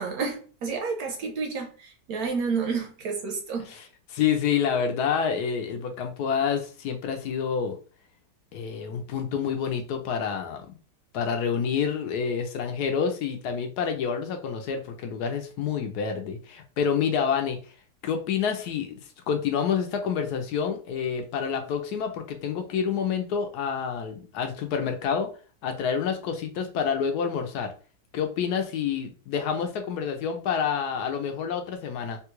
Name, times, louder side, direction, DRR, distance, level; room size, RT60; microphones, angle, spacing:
voice 1, 0.0-3.7, right 5 dB, 70° right, 1.0 m, -30 dB
voice 2, 4.1-7.8 8.5-10.6 11.1-17.6 18.0-19.0 19.3-25.3 25.6-27.7 28.1-32.2, left 7 dB, 75° left, 1.1 m, -28 dB
3.6 x 2.3 x 2.9 m
omnidirectional pair, 1.8 m